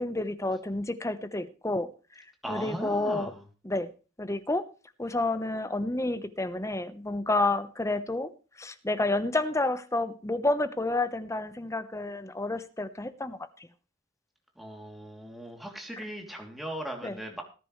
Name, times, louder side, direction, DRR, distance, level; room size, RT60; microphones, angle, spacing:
voice 1, 0.0-1.9 2.2-3.3 3.6-3.9 4.2-4.7 5.0-8.3 8.6-13.4 17.0-17.2, left 2 dB, 15° left, 12 dB, 0.9 m, -30 dB
voice 2, 2.4-3.4 14.6-17.4, equal, ahead, 1 dB, 2.9 m, -38 dB
19.0 x 10.0 x 3.2 m, 0.35 s
head